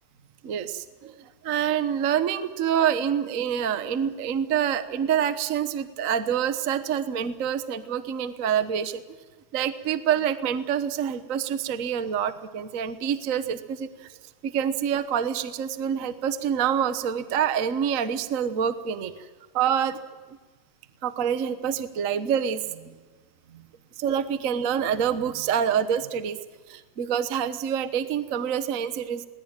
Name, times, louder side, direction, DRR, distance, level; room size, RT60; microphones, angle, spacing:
voice 1, 0.4-9.0 9.5-14.1 14.4-19.3 19.5-20.0 21.0-23.0 23.5-23.6 24.0-26.4 26.7-29.2, right 8 dB, 85° right, 11 dB, 0.7 m, -26 dB
21.5 x 19.0 x 9.0 m, 1.3 s
omnidirectional pair, 3.4 m